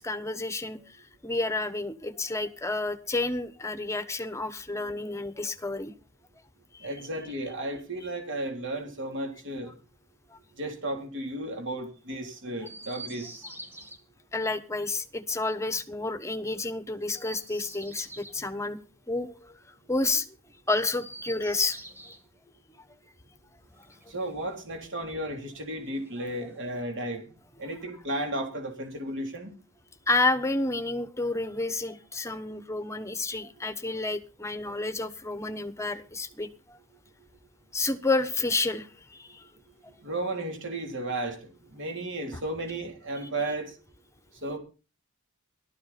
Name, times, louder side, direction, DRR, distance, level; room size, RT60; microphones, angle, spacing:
voice 1, 0.0-5.9 6.7-6.9 10.3-10.4 14.3-18.8 19.1-19.5 19.9-20.3 20.7-21.8 30.1-36.8 37.7-39.5, left 2 dB, 15° left, 11 dB, 1.2 m, -30 dB
voice 2, 6.8-9.7 10.6-13.4 24.1-29.5 40.0-43.7 44.4-44.6, right 1 dB, 55° right, 4 dB, 3.4 m, -34 dB
Chirp tweet, 12.6-14.0 17.0-18.4 20.8-22.2 23.6-24.7 25.8-26.7, right 1 dB, 10° right, 2.1 m, -46 dB
17.5 x 13.0 x 4.2 m, 0.34 s
head